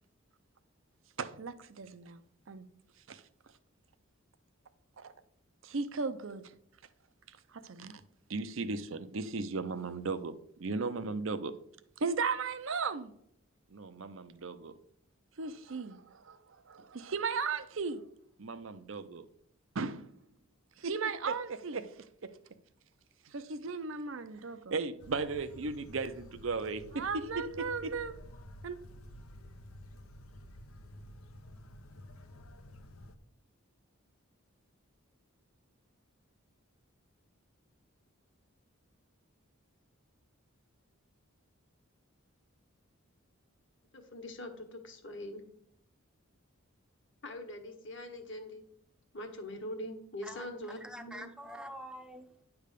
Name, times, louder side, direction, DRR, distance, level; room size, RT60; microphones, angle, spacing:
voice 1, 1.2-2.2 2.5-2.6 3.1-3.2 5.0-5.1 5.6-6.5 7.6-8.0 8.3-11.6 12.0-13.1 13.7-14.7 15.4-16.4 16.7-18.0 18.4-19.3 19.7-20.1 20.8-21.9 22.2-22.3 23.3-28.1 28.6-28.8, right 4 dB, 65° right, 0.6 m, -36 dB
sound 1, 25.0-33.2, left 1 dB, 85° left, 0.8 m, -51 dB
voice 2, 43.9-45.4 47.2-48.6 49.1-51.2, left 1 dB, 60° left, 1.4 m, -43 dB
voice 3, 50.2-52.4, equal, 5° right, 0.7 m, -46 dB
10.0 x 3.5 x 6.7 m
head